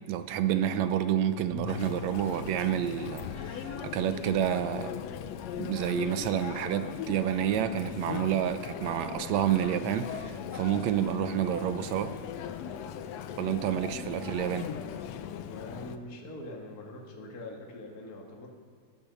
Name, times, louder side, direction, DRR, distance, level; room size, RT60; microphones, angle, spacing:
voice 1, 0.1-5.0 5.6-12.1 13.4-14.7, right 10 dB, 75° right, 10 dB, 1.8 m, -29 dB
sound 1, 1.5-7.8, left 5 dB, 25° right, 1.2 m, -47 dB
Chatter, 1.7-16.0, left 8 dB, 75° left, 1.7 m, -39 dB
voice 2, 15.4-18.5, left 1 dB, 35° left, -1 dB, 2.0 m, -43 dB
16.0 x 10.5 x 7.0 m, 2.2 s
omnidirectional pair, 3.5 m